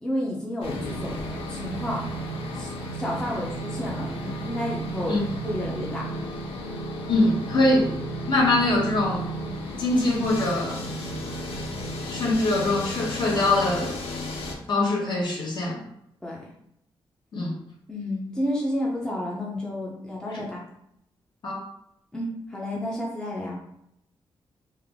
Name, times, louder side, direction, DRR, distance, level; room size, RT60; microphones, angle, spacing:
voice 1, 0.0-2.1 2.5-5.2 5.4-6.1 16.2-16.4 17.9-20.6 22.1-23.6, left 1 dB, 10° left, -4 dB, 0.6 m, -31 dB
sound 1, 0.6-14.5, equal, 85° left, 0.7 m, -33 dB
voice 2, 7.1-7.9 8.3-9.3 9.8-10.9 12.1-14.0 14.7-15.8 17.3-17.5 20.3-20.4 21.4-21.6, left 2 dB, 55° left, -4 dB, 1.0 m, -23 dB
3.3 x 2.0 x 3.5 m, 0.77 s
wide cardioid pair, 145°, 9 cm